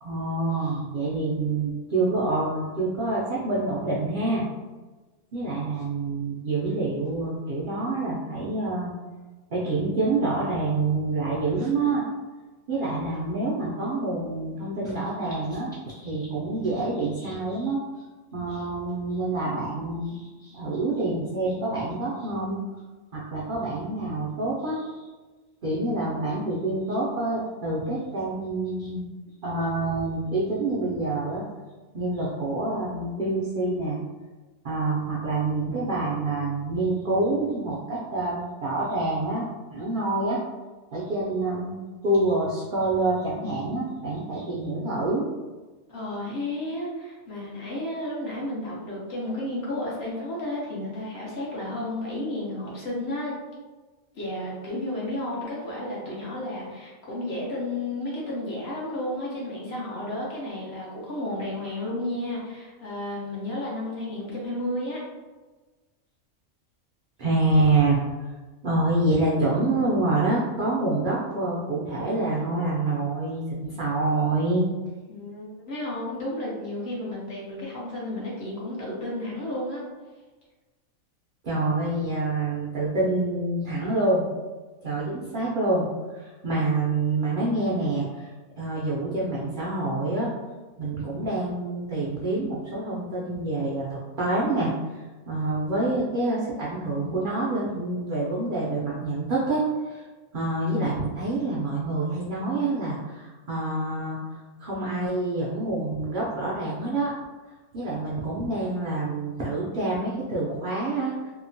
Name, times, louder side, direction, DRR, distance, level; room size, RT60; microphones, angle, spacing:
voice 1, 0.0-4.5 5.3-8.9 9.5-12.0 12.7-17.8 18.3-22.6 23.1-25.1 25.6-29.1 29.4-31.4 31.9-34.0 34.6-40.4 40.9-41.8 42.0-45.3 67.2-68.0 68.6-74.7 81.4-84.3 84.8-88.3 88.6-90.3 90.8-100.0 100.3-107.1 107.7-111.3, right 2 dB, 65° right, -6 dB, 0.5 m, -27 dB
voice 2, 45.9-53.4 54.1-65.0 75.1-79.8, left 1 dB, 55° left, -5 dB, 0.9 m, -32 dB
2.8 x 2.1 x 2.6 m, 1.3 s
omnidirectional pair, 1.4 m